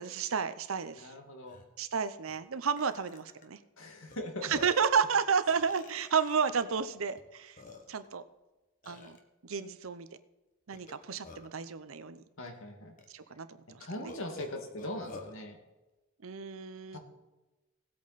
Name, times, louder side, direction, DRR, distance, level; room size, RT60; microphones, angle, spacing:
voice 1, 0.0-1.1 1.8-3.6 4.4-7.6 7.9-8.2 8.9-9.2 9.4-10.1 10.7-12.2 13.1-14.1 16.2-17.0, right 6 dB, 70° right, 12 dB, 0.7 m, -32 dB
voice 2, 0.9-1.6 3.8-4.5 12.4-13.0 13.8-15.6 16.9-17.0, left 1 dB, 65° left, 4 dB, 2.1 m, -40 dB
Burping eructation, 1.0-1.1 1.4-1.6 2.3-2.4 2.8-3.4 4.1-4.2 4.5-4.9 5.5-6.5 7.2-7.3 7.6-8.1 8.8-9.2 10.7-11.6 12.5-12.6 13.0-13.1 14.1-15.3, left 3 dB, 40° left, 1.5 m, -49 dB
17.5 x 8.5 x 4.1 m, 1.1 s
head